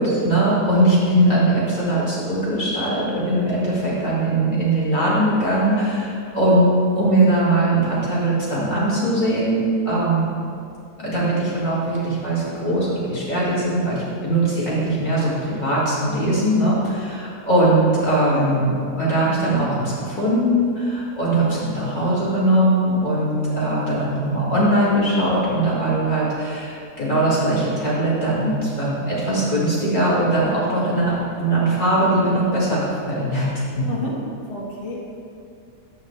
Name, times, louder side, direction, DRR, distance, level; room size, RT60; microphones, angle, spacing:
voice 1, 0.0-10.3 11.0-18.7 19.0-33.9, right 1 dB, 30° left, -8 dB, 2.6 m, -20 dB
voice 2, 33.9-34.2 34.5-35.0, left 1 dB, 85° left, -6 dB, 2.2 m, -30 dB
11.5 x 8.4 x 3.3 m, 2.4 s
omnidirectional pair, 1.8 m